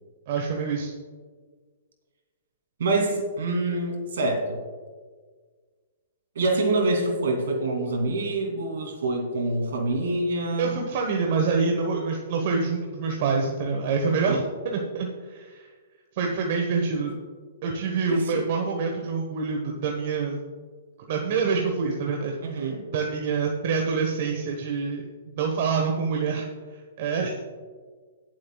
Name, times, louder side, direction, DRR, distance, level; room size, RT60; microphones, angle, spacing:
voice 1, 0.3-0.9 10.6-15.7 16.1-17.1 17.6-20.4 21.1-27.4, right 4 dB, 50° right, 1 dB, 1.2 m, -26 dB
voice 2, 2.8-4.6 6.3-10.8 14.0-14.4 18.1-18.4 22.4-22.8, right 2 dB, 70° right, 1 dB, 2.8 m, -26 dB
22.0 x 7.6 x 2.3 m, 1.6 s
hypercardioid pair, 140°, 0 cm